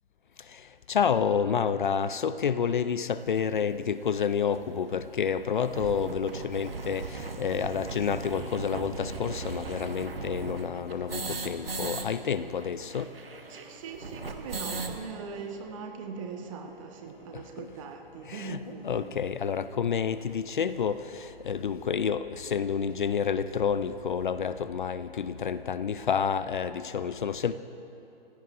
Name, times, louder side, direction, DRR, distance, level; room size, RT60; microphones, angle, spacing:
voice 1, 0.9-13.1 17.6-17.7 18.3-27.6, left 7 dB, 55° left, 13 dB, 0.5 m, -29 dB
sound 1, 3.4-3.5 4.2-4.3 4.5-4.6 4.9-5.0 5.4-12.1 12.3-12.4 12.6-15.0, right 4 dB, 70° right, 1.3 m, -37 dB
sound 2, 3.8-16.8, left 1 dB, 25° left, 1.8 m, -59 dB
Musical instrument, 8.8-20.4, right 2 dB, 10° right, 3.5 m, -58 dB
voice 2, 13.5-19.0, right 5 dB, 35° right, 4 dB, 1.2 m, -40 dB
27.5 x 16.0 x 2.5 m, 3.0 s
figure-of-eight pair, 125°, 30 cm